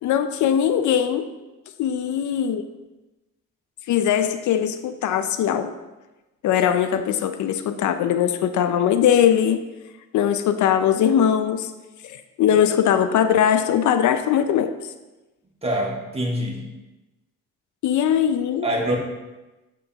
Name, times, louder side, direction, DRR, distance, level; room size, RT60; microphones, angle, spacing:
voice 1, 0.0-1.3 1.8-2.6 3.9-5.7 6.4-9.6 10.1-11.7 12.0-14.7 17.8-18.7, left 9 dB, 75° left, 10 dB, 0.6 m, -20 dB
voice 2, 15.6-16.6 18.6-19.0, equal, 20° right, -2 dB, 1.9 m, -24 dB
7.8 x 7.6 x 2.9 m, 1.1 s
cardioid pair, 90°, 30 cm